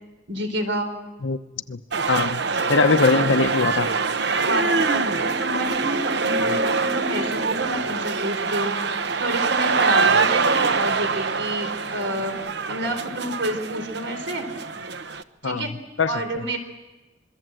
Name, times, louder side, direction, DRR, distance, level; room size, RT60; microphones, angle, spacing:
voice 1, 0.3-0.9 2.7-3.3 4.4-8.7 9.2-12.4 12.7-14.5 15.4-15.7 16.1-16.6, right 1 dB, 80° right, 7 dB, 3.9 m, -29 dB
sound 1, 1.9-15.2, right 4 dB, 65° right, 1.0 m, -24 dB
voice 2, 2.1-2.4 2.7-3.9 6.5-6.6 15.4-16.1, left 4 dB, 90° left, 11 dB, 0.8 m, -21 dB
26.0 x 22.5 x 7.7 m, 1.1 s
head